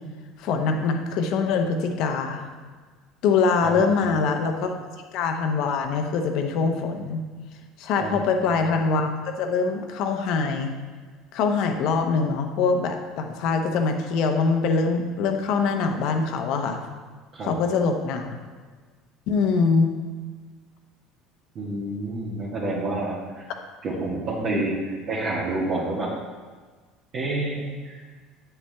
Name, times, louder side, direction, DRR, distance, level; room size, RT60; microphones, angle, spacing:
voice 1, 0.4-2.5 3.2-4.7 5.1-7.3 7.8-9.1 9.4-10.7 11.3-16.8 17.4-18.3 19.3-19.9 24.5-24.6, left 4 dB, 65° left, 5 dB, 0.8 m, -23 dB
voice 2, 3.6-4.1 8.0-8.4 17.3-17.5 21.5-23.4 23.8-26.1 27.1-27.9, right 2 dB, 50° right, -7 dB, 1.5 m, -29 dB
8.4 x 5.6 x 3.4 m, 1.5 s
hypercardioid pair, 75°, 0 cm